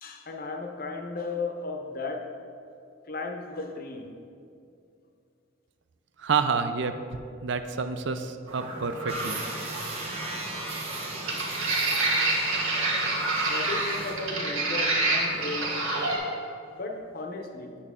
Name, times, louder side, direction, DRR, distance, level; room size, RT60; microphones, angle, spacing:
voice 1, 0.0-2.3 3.0-4.1 13.1-15.8 16.1-16.4 16.7-17.8, left 3 dB, 45° left, 3 dB, 0.7 m, -35 dB
voice 2, 6.2-7.0 7.4-9.4, right 5 dB, 60° right, 9 dB, 0.4 m, -28 dB
sound 1, 8.5-16.2, right 2 dB, 85° right, 1.5 m, -28 dB
sound 2, 9.1-14.2, right 3 dB, 30° right, 0.9 m, -37 dB
8.5 x 6.5 x 3.6 m, 2.5 s
head